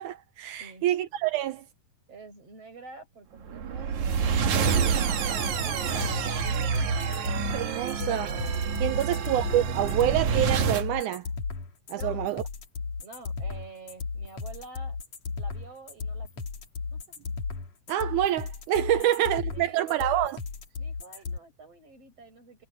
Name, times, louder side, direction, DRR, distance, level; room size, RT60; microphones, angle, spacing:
voice 1, 0.0-1.7 7.3-11.3 11.9-12.4 17.9-20.4, right 12 dB, 80° right, 1.9 m, -27 dB
voice 2, 2.1-6.3 11.9-12.2 13.0-15.0 15.4-16.5 16.9-17.2 18.9-20.3 20.8-22.7, right 3 dB, 45° right, 9.0 m, -48 dB
sound 1, 3.5-10.9, right 6 dB, 60° right, 3.2 m, -27 dB
sound 2, 5.4-21.4, left 4 dB, 50° left, 3.8 m, -35 dB
omnidirectional pair, 4.0 m